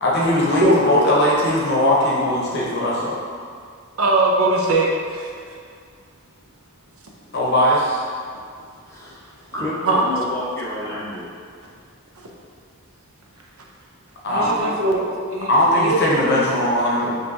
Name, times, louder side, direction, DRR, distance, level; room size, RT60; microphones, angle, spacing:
voice 1, 0.0-3.2 7.3-8.0 14.2-14.7 15.5-17.2, left 1 dB, 50° left, -5 dB, 0.9 m, -19 dB
voice 2, 4.0-5.3 9.8-10.0 12.2-12.3 14.3-15.5 15.8-16.0, right 2 dB, 70° right, -1 dB, 0.6 m, -20 dB
voice 3, 8.8-11.3, left 1 dB, 15° left, -9 dB, 1.1 m, -30 dB
5.3 x 3.1 x 2.7 m, 2.2 s
head